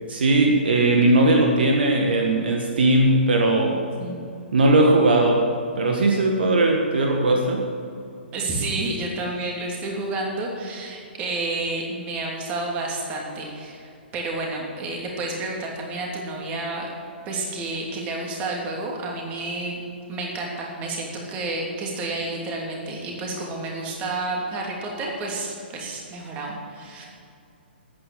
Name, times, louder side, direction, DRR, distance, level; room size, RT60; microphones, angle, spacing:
voice 1, 0.1-3.8 4.5-5.5 5.7-7.7, right 2 dB, 60° right, 2 dB, 1.6 m, -19 dB
voice 2, 8.3-16.9 17.3-19.8 20.1-27.0, right 2 dB, 25° right, -1 dB, 2.9 m, -30 dB
13.5 x 9.3 x 7.0 m, 2.5 s
figure-of-eight pair, 125°, 6 cm